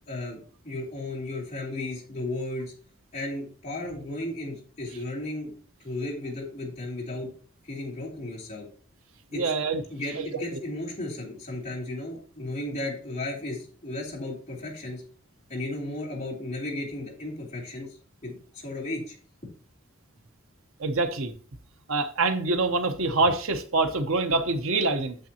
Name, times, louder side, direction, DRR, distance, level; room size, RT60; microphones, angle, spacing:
voice 1, 0.1-2.7 3.1-5.5 5.8-7.3 7.6-8.7 9.3-9.4 9.9-15.0 15.5-17.9 18.2-18.4 18.6-19.1, left 2 dB, 30° left, 3.2 m, -34 dB
voice 2, 9.3-9.8 10.2-10.3 20.8-21.3 21.9-25.2, right 3 dB, 80° right, 1.0 m, -25 dB
9.0 x 7.2 x 2.9 m
head